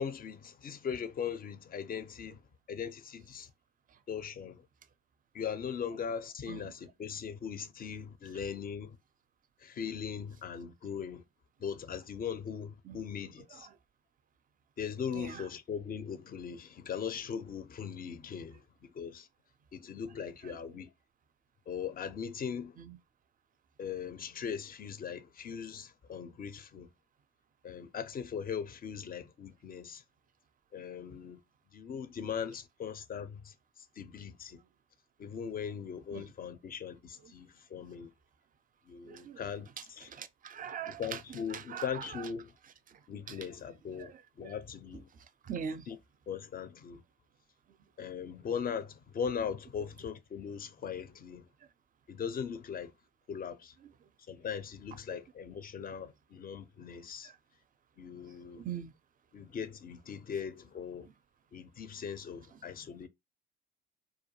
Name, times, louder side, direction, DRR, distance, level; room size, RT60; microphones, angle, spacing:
voice 1, 0.0-2.4 2.7-3.5 4.1-4.7 5.3-9.0 9.6-11.2 11.6-13.7 14.8-19.3 19.7-20.9 21.7-22.8 23.8-26.9 27.6-30.0 30.7-31.4 31.7-34.6 35.2-38.1 38.9-40.1 40.9-42.5 43.1-45.1 45.9-46.0 46.3-47.0 48.0-51.5 52.1-52.9 53.3-53.8 54.3-57.3 58.0-58.6 59.3-61.1 61.5-63.1, left 7 dB, 30° left, 0.4 m, -39 dB
voice 2, 39.0-39.4 40.1-41.2 41.5-42.1 42.9-43.0 43.3-43.5 44.0-44.1 44.4-44.5 45.4-45.8 55.1-55.2 58.6-58.9, right 8 dB, 30° right, 0.4 m, -41 dB
2.3 x 2.1 x 2.9 m
hypercardioid pair, 55°, 30 cm